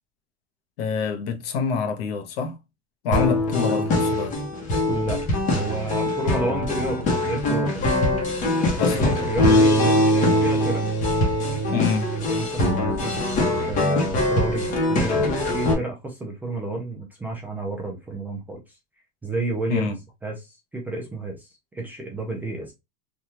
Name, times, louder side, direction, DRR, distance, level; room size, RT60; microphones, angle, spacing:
voice 1, 0.8-2.6 3.0-4.4 8.8-9.2 11.7-12.1 19.7-20.0, left 6 dB, 70° left, 0.9 m, -26 dB
sound 1, 3.1-15.7, left 1 dB, 25° left, 0.8 m, -22 dB
voice 2, 4.9-5.2 5.5-7.8 8.7-10.8 12.2-18.6 19.2-20.0 20.2-21.5 21.7-22.7, right 2 dB, 5° right, 0.3 m, -31 dB
3.4 x 2.3 x 2.7 m
supercardioid pair, 160°, 31 cm